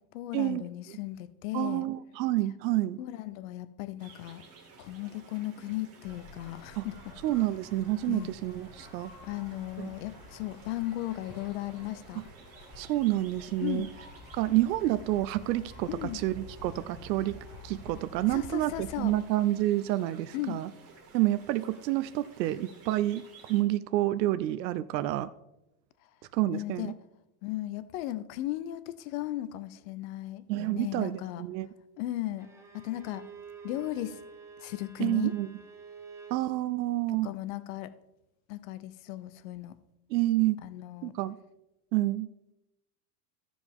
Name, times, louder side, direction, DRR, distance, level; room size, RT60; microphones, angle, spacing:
voice 1, 0.1-1.9 3.0-4.4 4.8-7.4 8.1-8.3 9.2-12.2 13.6-13.9 15.9-16.2 18.3-19.1 20.3-20.6 26.5-27.0 27.4-31.4 32.0-32.5 32.7-33.2 33.6-34.2 34.6-35.4 37.1-37.9 38.5-39.8 40.6-41.1, left 15 dB, 55° left, 0.7 m, -36 dB
voice 2, 1.5-3.0 6.7-6.9 7.2-9.1 9.8-9.9 12.8-13.9 14.3-17.4 17.6-20.7 21.1-25.3 26.3-26.9 30.5-31.7 35.0-35.5 36.3-37.3 40.1-40.6 41.0-41.3 41.9-42.3, right 15 dB, 85° right, 0.6 m, -28 dB
sound 1, 4.0-23.6, right 4 dB, 30° right, 1.8 m, -55 dB
sound 2, 6.0-19.2, left 2 dB, 15° left, 2.8 m, -50 dB
Bowed string instrument, 32.4-36.5, right 5 dB, 5° right, 0.8 m, -49 dB
15.0 x 5.1 x 3.5 m
supercardioid pair, 150°, 50 cm